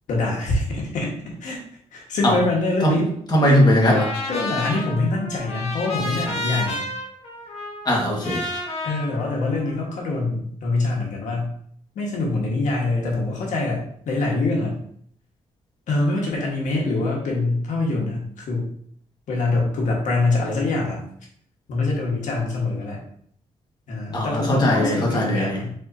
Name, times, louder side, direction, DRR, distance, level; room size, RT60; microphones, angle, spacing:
voice 1, 0.1-1.1 1.4-1.6 1.9-3.1 3.4-3.6 4.3-6.8 8.8-11.5 11.9-14.8 15.9-18.7 19.3-21.0 21.7-23.0 23.9-25.7, left 2 dB, 90° left, -2 dB, 1.4 m, -24 dB
voice 2, 3.3-4.1 7.8-8.4 24.1-25.6, left 1 dB, 35° left, -2 dB, 1.5 m, -19 dB
Trumpet, 3.8-10.0, left 2 dB, 60° left, 1.4 m, -31 dB
4.6 x 4.2 x 2.7 m, 0.64 s
cardioid pair, 110°, 12 cm